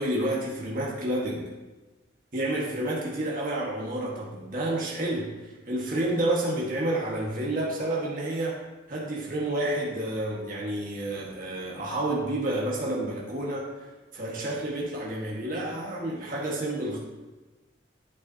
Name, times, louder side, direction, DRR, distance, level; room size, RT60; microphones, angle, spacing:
voice 1, 0.0-1.5 2.3-5.3 5.7-8.6 8.9-13.8 14.1-17.0, right 1 dB, 45° right, -3 dB, 1.4 m, -29 dB
8.5 x 7.9 x 2.8 m, 1.2 s
head